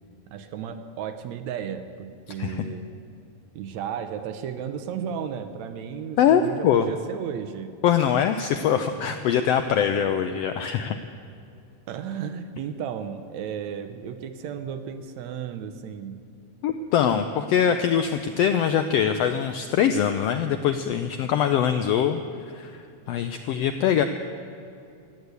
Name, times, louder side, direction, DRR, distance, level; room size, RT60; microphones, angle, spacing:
voice 1, 0.3-2.9 3.5-7.8 9.1-9.2 11.9-16.3, right 8 dB, 75° right, 9 dB, 2.0 m, -34 dB
voice 2, 6.2-6.9 7.8-11.0 16.6-22.2 22.5-24.0, left 8 dB, 80° left, 8 dB, 1.4 m, -23 dB
16.0 x 10.5 x 8.2 m, 2.6 s
omnidirectional pair, 3.4 m